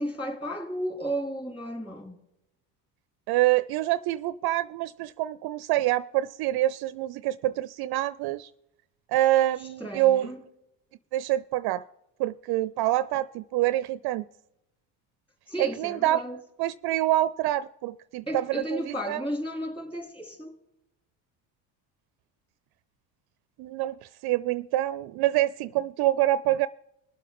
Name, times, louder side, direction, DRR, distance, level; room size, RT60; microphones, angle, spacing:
voice 1, 0.0-2.2 9.6-10.4 15.5-16.4 18.3-20.5, equal, 10° left, 3.5 m, -33 dB
voice 2, 3.3-8.5 9.1-10.3 11.1-11.8 12.2-14.3 15.6-16.2 16.6-19.3 23.6-26.7, right 14 dB, 55° right, 0.5 m, -26 dB
21.5 x 7.5 x 3.6 m
supercardioid pair, 75°, 47 cm